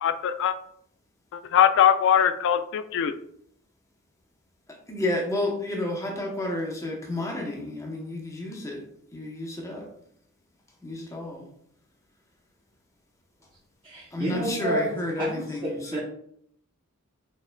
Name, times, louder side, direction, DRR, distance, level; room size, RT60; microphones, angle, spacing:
voice 1, 0.0-0.5 1.3-3.1, left 9 dB, 60° left, 11 dB, 0.3 m, -21 dB
voice 2, 4.9-8.8 9.1-9.9 10.8-11.5 14.1-16.0, left 1 dB, 15° left, -1 dB, 0.8 m, -31 dB
voice 3, 13.8-14.9 15.2-16.0, right 1 dB, 25° right, -4 dB, 0.6 m, -30 dB
4.2 x 3.6 x 2.2 m, 0.68 s
head